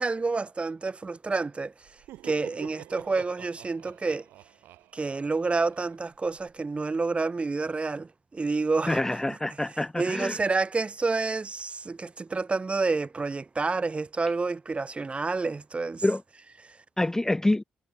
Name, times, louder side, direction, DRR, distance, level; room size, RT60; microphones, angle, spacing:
voice 1, 0.0-1.7 2.2-4.3 4.9-9.0 9.3-9.4 10.0-16.0 16.6-16.8, right 3 dB, 30° right, 0.7 m, -29 dB
Laughter, 1.8-6.5, right 15 dB, 75° right, 1.5 m, -47 dB
voice 2, 8.9-10.4 16.0-16.2 17.0-17.6, left 1 dB, 15° left, 0.4 m, -26 dB
hypercardioid pair, 45°, 4 cm